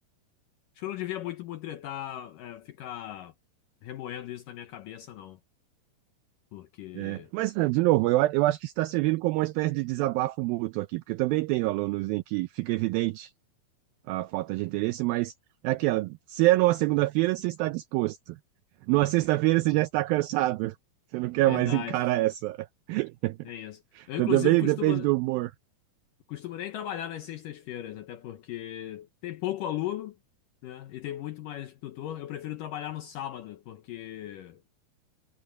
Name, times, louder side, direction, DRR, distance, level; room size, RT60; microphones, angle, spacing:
voice 1, 0.8-3.3 3.8-5.4 6.5-7.3 21.5-22.0 23.4-23.8 24.1-25.1 26.3-30.2 30.6-34.6, left 12 dB, 75° left, 2.0 m, -37 dB
voice 2, 7.0-13.3 14.1-15.3 15.6-18.4 18.9-20.8 21.1-23.4 24.0-25.5, right 19 dB, 85° right, 2.1 m, -26 dB
omnidirectional pair, 4.8 m